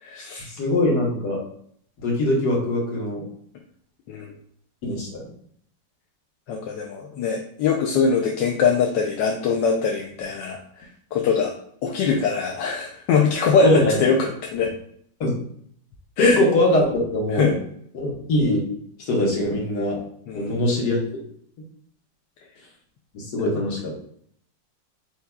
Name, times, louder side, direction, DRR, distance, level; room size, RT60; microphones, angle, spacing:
voice 1, 0.0-0.5 4.1-4.3 6.5-11.5 11.8-14.7 16.2-16.4 17.3-17.6 20.3-20.6, left 5 dB, 85° left, 1 dB, 1.3 m, -22 dB
voice 2, 0.5-1.4 2.0-3.2 4.8-5.2 13.6-14.0 15.2-15.3 16.2-17.6 17.9-18.6 19.1-20.0 20.3-21.0 23.1-23.9, left 1 dB, 65° left, -2 dB, 1.9 m, -22 dB
8.2 x 2.8 x 2.3 m, 0.64 s
omnidirectional pair, 1.9 m